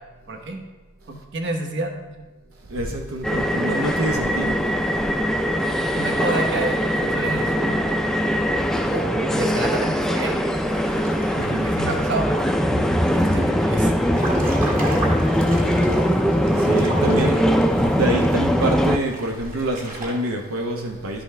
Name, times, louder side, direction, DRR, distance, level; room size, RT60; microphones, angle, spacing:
voice 1, 0.3-0.6 1.1-1.9 6.0-7.9 8.9-10.3 11.6-12.5 13.0-13.9, right 2 dB, 55° right, 3 dB, 0.9 m, -29 dB
voice 2, 2.7-4.7 5.9-6.0 11.3-11.7 16.5-17.5 17.9-21.2, right 1 dB, 80° right, 2 dB, 0.7 m, -26 dB
sound 1, 3.2-19.0, equal, ahead, 0.3 m, -21 dB
sound 2, 10.4-20.1, right 1 dB, 40° right, 1.7 m, -35 dB
11.0 x 5.3 x 3.3 m, 1.1 s
head